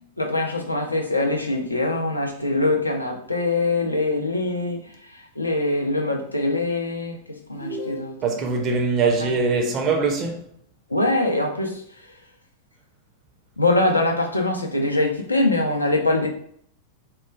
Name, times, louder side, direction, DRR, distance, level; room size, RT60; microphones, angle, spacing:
voice 1, 0.2-8.4 9.2-9.3 10.9-12.2 13.6-16.3, left 2 dB, 85° left, 0.4 m, -23 dB
sound 1, 7.5-8.6, equal, 60° left, 0.9 m, -35 dB
voice 2, 8.2-10.4, right 4 dB, 35° right, 0.5 m, -22 dB
2.9 x 2.2 x 2.3 m
figure-of-eight pair, 90°, 0 cm